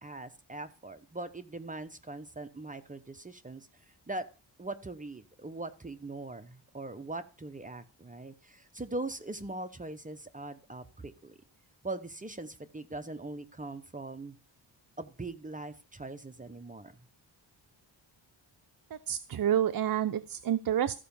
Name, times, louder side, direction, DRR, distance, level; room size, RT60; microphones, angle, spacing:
voice 1, 0.0-3.7 4.1-4.3 4.6-11.4 11.8-14.4 15.0-16.9, right 2 dB, 20° right, 9 dB, 0.8 m, -41 dB
voice 2, 19.1-21.0, right 10 dB, 55° right, 10 dB, 0.7 m, -28 dB
14.0 x 5.7 x 7.0 m, 0.34 s
wide cardioid pair, 125°, 43 cm